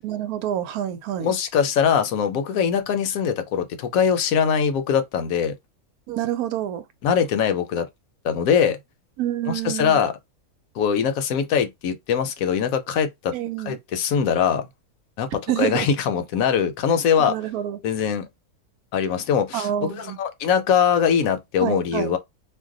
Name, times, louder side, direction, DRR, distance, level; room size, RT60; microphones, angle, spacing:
voice 1, 0.0-1.3 6.1-6.8 9.2-10.0 13.3-13.8 15.5-15.9 17.2-17.8 19.5-20.2 21.6-22.2, right 11 dB, 90° right, 1.1 m, -27 dB
voice 2, 1.2-5.5 7.0-7.9 8.2-8.8 9.5-10.1 10.8-13.3 13.7-14.7 15.2-17.3 17.8-18.3 18.9-22.2, left 7 dB, 75° left, 1.0 m, -22 dB
2.6 x 2.1 x 3.7 m
omnidirectional pair, 1.5 m